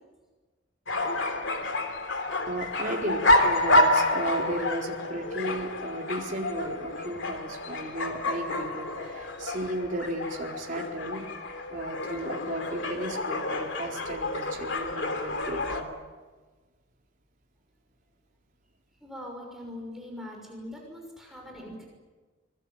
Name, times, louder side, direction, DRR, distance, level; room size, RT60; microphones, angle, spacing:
sound 1, 0.9-15.8, left 1 dB, 65° left, 3.1 m, -29 dB
voice 1, 2.5-11.2 11.7-15.9, right 1 dB, 40° right, 0 dB, 4.4 m, -34 dB
voice 2, 19.0-21.8, left 1 dB, ahead, -1 dB, 6.1 m, -41 dB
26.0 x 21.5 x 9.0 m, 1.3 s
head